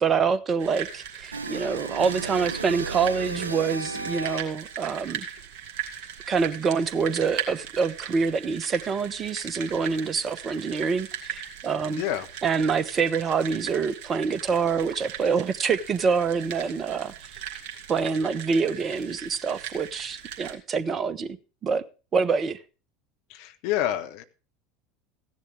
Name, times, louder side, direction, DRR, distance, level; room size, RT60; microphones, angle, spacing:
voice 1, 0.0-5.3 6.3-12.0 12.4-17.1 17.9-21.3 21.6-21.8 22.1-22.6, right 5 dB, 30° right, 0.9 m, -26 dB
sound 1, 0.6-20.6, right 8 dB, 50° right, 2.6 m, -39 dB
sound 2, 1.3-4.7, right 3 dB, 80° right, 0.5 m, -34 dB
voice 2, 12.0-12.3 23.3-24.2, left 12 dB, 55° left, 1.3 m, -28 dB
15.5 x 10.5 x 3.4 m
figure-of-eight pair, 75°, 0 cm